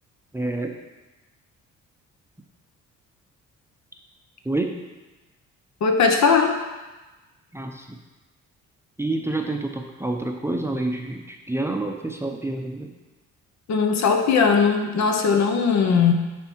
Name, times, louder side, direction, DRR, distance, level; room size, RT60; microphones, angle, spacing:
voice 1, 0.3-0.8 4.4-4.8 7.5-8.0 9.0-12.9, right 2 dB, 10° right, 2 dB, 0.6 m, -28 dB
voice 2, 5.8-6.6 13.7-16.1, left 5 dB, 65° left, 4 dB, 1.0 m, -19 dB
9.4 x 3.5 x 4.5 m, 1.2 s
cardioid pair, 90°, 30 cm